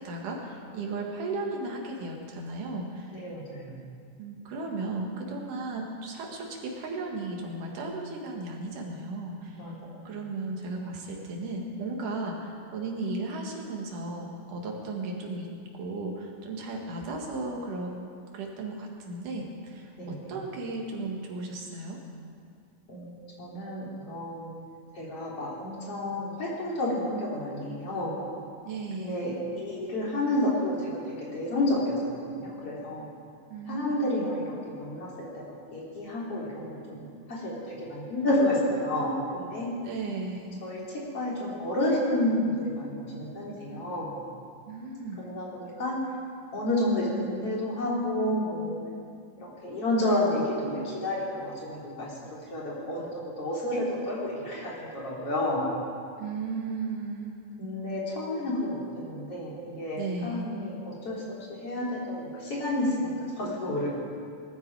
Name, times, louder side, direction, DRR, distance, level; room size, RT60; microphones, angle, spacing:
voice 1, 0.0-3.2 4.2-9.7 10.0-17.9 18.3-22.0 28.7-29.2 33.5-34.3 39.8-40.5 44.7-45.2 56.2-57.4 60.0-60.5, right 3 dB, 85° right, 0 dB, 3.4 m, -35 dB
voice 2, 3.1-3.8 9.6-10.1 20.0-20.3 22.9-24.5 24.9-28.3 29.0-33.1 33.7-34.5 34.8-35.1 35.3-35.4 35.7-39.7 40.6-40.8 41.1-44.2 45.2-45.9 46.5-48.8 49.4-55.7 57.6-63.9, left 1 dB, 50° left, -5 dB, 4.2 m, -30 dB
20.5 x 13.0 x 4.8 m, 2.3 s
omnidirectional pair, 3.6 m